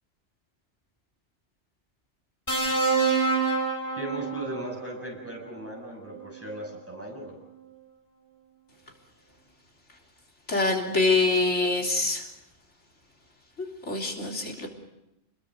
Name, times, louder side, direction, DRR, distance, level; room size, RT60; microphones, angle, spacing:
sound 1, 2.5-4.7 6.1-6.3, right 4 dB, 15° left, 4.8 m, -26 dB
voice 1, 4.0-7.4, equal, 10° right, 0 dB, 7.1 m, -37 dB
voice 2, 10.5-12.2 13.9-14.7, left 3 dB, 80° left, 1 dB, 3.6 m, -24 dB
29.0 x 21.5 x 6.5 m, 0.89 s
omnidirectional pair, 1.2 m